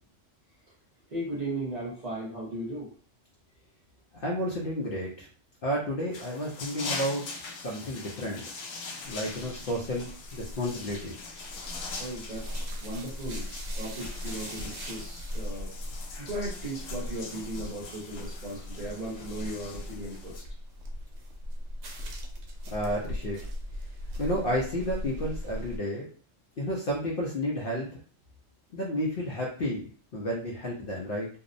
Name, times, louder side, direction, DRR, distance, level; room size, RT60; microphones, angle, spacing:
voice 1, 1.1-2.9 12.0-13.5 13.8-15.7 16.2-20.4, right 1 dB, 40° right, -5 dB, 0.8 m, -37 dB
voice 2, 4.1-5.3 5.6-7.3 7.6-8.4 9.0-11.2 22.7-23.4 24.2-26.1 26.6-27.9 28.7-31.3, equal, 55° left, -3 dB, 0.7 m, -31 dB
sound 1, 6.1-20.4, left 4 dB, 80° left, 1.0 m, -42 dB
sound 2, 9.0-25.8, left 1 dB, 75° right, 0.9 m, -39 dB
2.7 x 2.0 x 2.5 m, 0.43 s
omnidirectional pair, 1.3 m